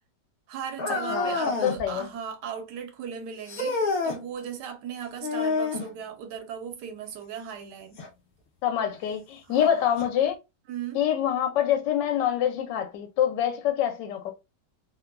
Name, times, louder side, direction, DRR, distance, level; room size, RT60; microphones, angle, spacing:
voice 1, 0.5-8.0 9.5-9.9 10.7-11.0, right 8 dB, 75° right, 1.2 m, -37 dB
sound 1, 0.8-1.8 3.5-4.2 5.2-5.9 8.0-8.1 8.9-9.0 10.0-10.1, left 3 dB, 60° left, 0.5 m, -28 dB
voice 2, 1.6-2.1 8.6-10.4 10.9-14.3, left 10 dB, 85° left, 1.2 m, -25 dB
3.1 x 2.2 x 2.3 m
omnidirectional pair, 1.9 m